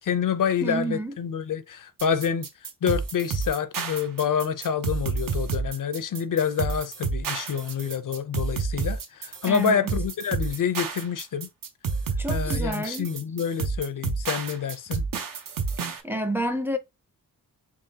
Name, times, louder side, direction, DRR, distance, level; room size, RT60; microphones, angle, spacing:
voice 1, 0.0-2.5 2.8-11.5 12.3-15.0, left 7 dB, 65° left, 0.5 m, -27 dB
voice 2, 0.6-1.2 9.5-9.7 12.2-13.1 16.0-16.8, right 1 dB, 5° right, 0.4 m, -29 dB
sound 1, 2.0-16.0, right 5 dB, 70° right, 0.7 m, -30 dB
3.6 x 3.4 x 2.7 m
wide cardioid pair, 110°, 35 cm